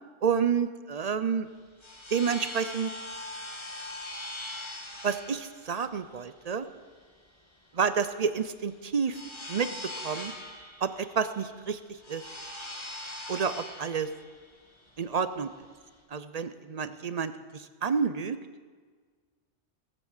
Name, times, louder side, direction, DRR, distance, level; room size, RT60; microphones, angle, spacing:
voice 1, 0.2-1.5 2.1-2.9 5.0-6.6 7.7-9.2 9.5-9.7 10.0-10.3 10.8-11.8 12.1-12.2 13.3-14.1 15.0-15.5 16.1-18.4, right 6 dB, 45° right, 12 dB, 0.5 m, -29 dB
sound 1, 1.4-16.0, left 1 dB, 25° left, 2.3 m, -42 dB
16.5 x 8.0 x 7.3 m, 1.5 s
omnidirectional pair, 1.2 m